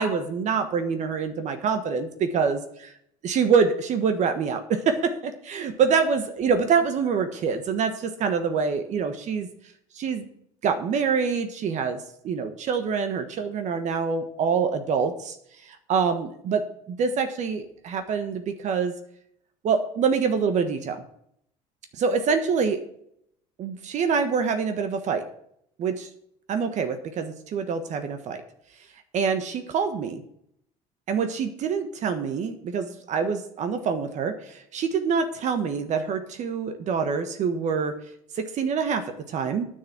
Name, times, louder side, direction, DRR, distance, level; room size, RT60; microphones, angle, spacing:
voice 1, 0.0-2.9 3.2-9.5 9.9-10.3 10.6-12.0 12.2-15.4 15.6-18.9 19.6-21.0 21.9-22.8 23.6-25.2 25.8-26.1 26.5-28.4 29.1-30.2 31.1-38.0 38.4-39.7, right 6 dB, 50° right, 8 dB, 1.3 m, -25 dB
9.4 x 6.6 x 7.4 m, 0.72 s
supercardioid pair, 105°, 15 cm